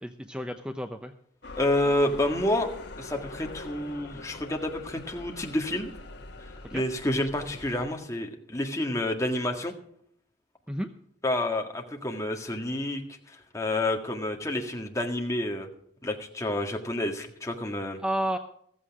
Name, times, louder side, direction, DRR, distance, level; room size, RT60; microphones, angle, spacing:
voice 1, 0.0-1.1 6.6-6.8 10.7-10.9 18.0-18.4, right 1 dB, 5° right, 7 dB, 0.7 m, -31 dB
sound 1, 1.4-7.8, left 2 dB, 60° left, 1.6 m, -43 dB
voice 2, 1.6-2.7 3.0-5.9 6.7-9.7 11.2-13.0 13.3-15.7 16.0-18.0, left 1 dB, 15° left, 2 dB, 1.8 m, -29 dB
15.0 x 14.5 x 3.6 m, 0.66 s
head